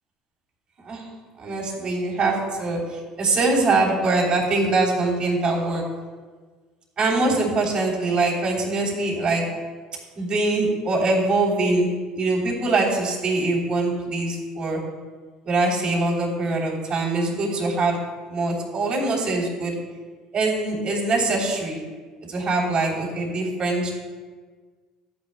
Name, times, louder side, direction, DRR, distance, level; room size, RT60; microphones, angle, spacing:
voice 1, 1.4-5.8 7.0-9.5 10.1-14.8 15.4-18.0 18.3-19.8 20.3-21.8 22.3-23.9, right 2 dB, 40° right, -2 dB, 3.2 m, -23 dB
14.0 x 9.7 x 2.2 m, 1.4 s
hypercardioid pair, 65°, 2 cm